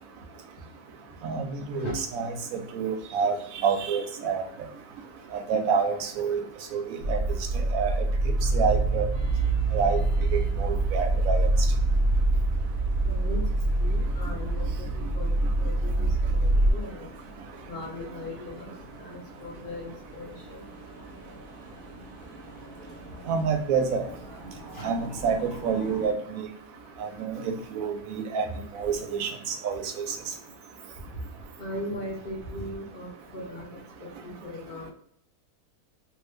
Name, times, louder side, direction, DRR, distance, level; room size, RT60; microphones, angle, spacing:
voice 1, 1.2-3.4 3.6-4.4 5.5-6.4 6.7-6.8 7.1-7.2 7.7-7.9 8.5-9.1 9.7-10.0 10.3-11.5 23.3-24.0 24.8-26.5 27.0-28.5 28.7-29.8 30.1-30.2, right 6 dB, 70° right, 5 dB, 0.9 m, -27 dB
sound 1, 7.0-16.7, right 2 dB, 90° right, 0.4 m, -25 dB
sound 2, 9.1-26.1, right 1 dB, 20° right, 1.0 m, -47 dB
voice 2, 13.0-13.4 13.8-17.1 17.7-18.7 19.0-20.6 24.7-24.9 31.6-33.7 34.0-34.3 34.7-34.9, left 1 dB, 50° left, -3 dB, 0.7 m, -38 dB
2.6 x 2.5 x 3.3 m, 0.66 s
omnidirectional pair, 1.6 m